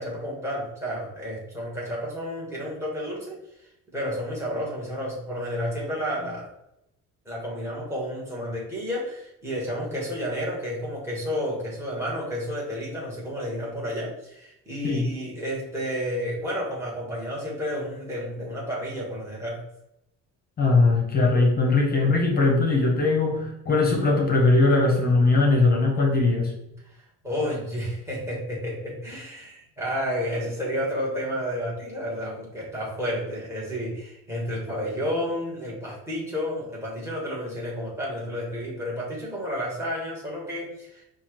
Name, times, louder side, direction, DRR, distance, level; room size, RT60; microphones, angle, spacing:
voice 1, 0.0-3.4 3.9-6.5 7.2-19.6 27.2-41.0, equal, 10° right, -4 dB, 1.4 m, -31 dB
voice 2, 20.6-26.5, left 3 dB, 30° left, 1 dB, 0.8 m, -20 dB
5.7 x 2.3 x 3.1 m, 0.83 s
cardioid pair, 145°, 31 cm